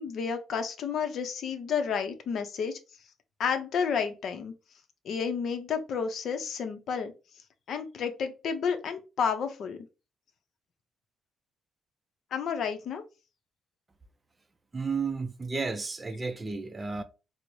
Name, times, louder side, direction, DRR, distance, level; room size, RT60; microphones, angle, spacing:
voice 1, 0.0-2.8 3.4-4.5 5.0-7.1 7.7-9.8 12.3-13.0, left 6 dB, 65° left, 0.6 m, -31 dB
voice 2, 14.7-17.0, right 4 dB, 25° right, 0.4 m, -32 dB
4.4 x 2.0 x 2.6 m
cardioid pair, 90°, 0 cm